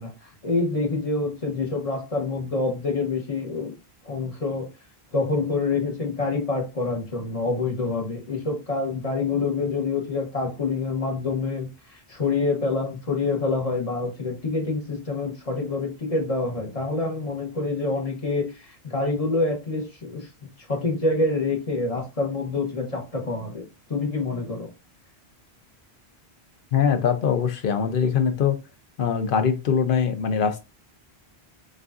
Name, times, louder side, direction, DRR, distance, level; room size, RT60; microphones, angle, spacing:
voice 1, 0.0-3.7 4.0-4.7 5.1-20.3 20.7-23.6 23.9-24.7, left 3 dB, 35° left, 0 dB, 1.2 m, -26 dB
voice 2, 26.7-28.6 29.0-30.6, left 7 dB, 60° left, 8 dB, 0.8 m, -22 dB
6.4 x 2.5 x 2.5 m, 0.28 s
omnidirectional pair, 1.1 m